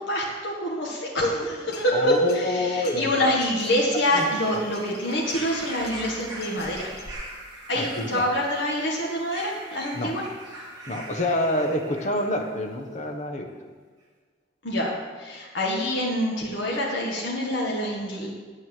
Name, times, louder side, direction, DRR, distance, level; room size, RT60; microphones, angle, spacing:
voice 1, 0.0-6.9 7.7-10.2 14.6-18.3, equal, 90° left, -3 dB, 1.8 m, -26 dB
sound 1, 1.6-7.1, left 2 dB, 60° left, 1.7 m, -45 dB
voice 2, 1.9-3.3 4.1-4.3 4.5-4.6 7.7-8.3 9.9-10.1 10.9-13.5, left 1 dB, 40° left, 4 dB, 1.3 m, -27 dB
sound 2, 3.9-12.6 13.5-13.6, right 1 dB, 20° right, 2.4 m, -42 dB
9.5 x 8.1 x 7.7 m, 1.5 s
head